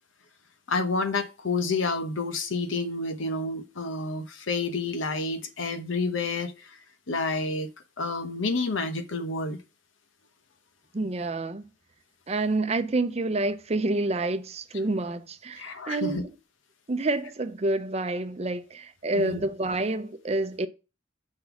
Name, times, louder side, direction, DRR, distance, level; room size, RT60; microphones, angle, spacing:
voice 1, 0.7-6.7 7.1-7.7 8.0-9.6 15.6-16.2 19.1-19.4, left 3 dB, 90° left, 0.9 m, -29 dB
voice 2, 10.9-11.6 12.3-16.3 16.9-20.7, right 2 dB, 35° right, 0.5 m, -28 dB
5.3 x 4.0 x 5.8 m
head